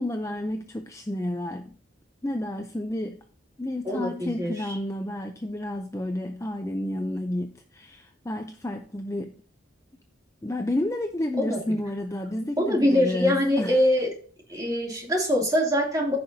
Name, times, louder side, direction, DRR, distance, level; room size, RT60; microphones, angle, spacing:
voice 1, 0.0-1.7 2.2-3.2 3.6-9.3 10.4-13.8, left 1 dB, 15° left, 0.5 m, -31 dB
voice 2, 3.8-4.8 11.4-11.6 12.6-14.1 14.5-16.2, left 1 dB, 20° right, 2.8 m, -23 dB
14.5 x 5.9 x 2.7 m
head